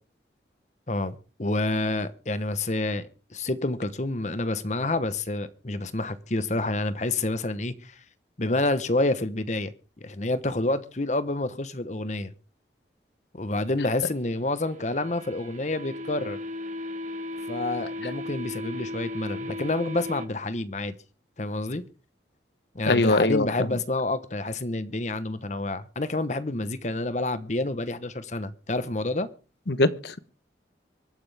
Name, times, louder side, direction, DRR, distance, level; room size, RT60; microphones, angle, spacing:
voice 1, 0.9-3.0 3.3-8.0 8.4-9.7 10.0-12.3 13.3-16.4 17.5-20.9 21.4-21.8 22.7-29.3, left 2 dB, 40° left, 1.0 m, -28 dB
sound 1, 14.3-20.3, left 1 dB, 40° right, 1.3 m, -36 dB
voice 2, 22.9-23.5 29.7-30.2, left 2 dB, 70° left, 1.0 m, -22 dB
25.0 x 9.6 x 3.4 m
head